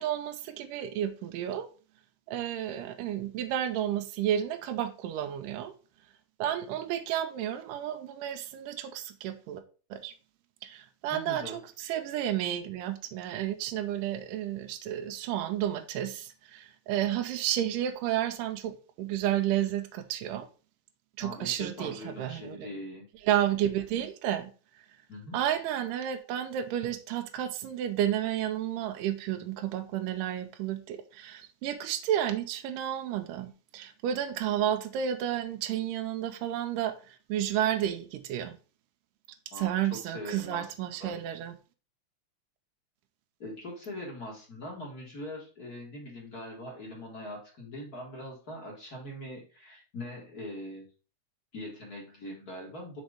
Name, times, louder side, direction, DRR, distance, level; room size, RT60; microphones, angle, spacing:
voice 1, 0.0-1.7 2.3-5.7 6.4-9.6 9.9-10.1 10.6-20.5 21.2-22.7 23.2-24.5 25.3-38.6 39.6-41.5, right 11 dB, 90° right, 2.2 m, -31 dB
voice 2, 11.1-11.6 21.2-23.0 25.1-25.4 39.5-40.7 41.0-41.2 43.4-50.9 51.5-53.0, left 1 dB, 40° left, 1.5 m, -42 dB
5.2 x 4.4 x 4.8 m
omnidirectional pair, 3.7 m